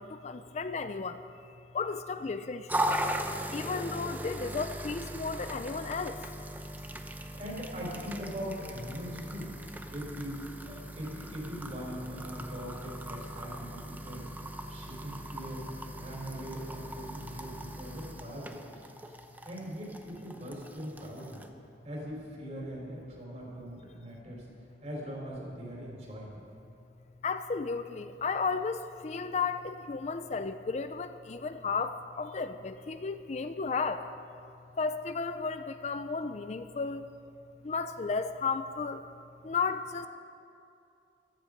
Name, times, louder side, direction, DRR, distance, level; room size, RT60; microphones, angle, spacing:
voice 1, 0.0-2.9 3.5-6.2 27.2-34.1 34.8-37.1 37.6-39.0 39.4-40.1, left 4 dB, 40° left, 10 dB, 0.4 m, -34 dB
sound 1, 2.7-21.5, right 1 dB, 10° right, 0.7 m, -39 dB
voice 2, 7.3-9.5 9.9-14.3 14.7-18.7 19.4-21.4 21.8-24.5 24.8-26.5, equal, 40° right, -3 dB, 4.2 m, -41 dB
15.5 x 13.0 x 5.2 m, 2.6 s
head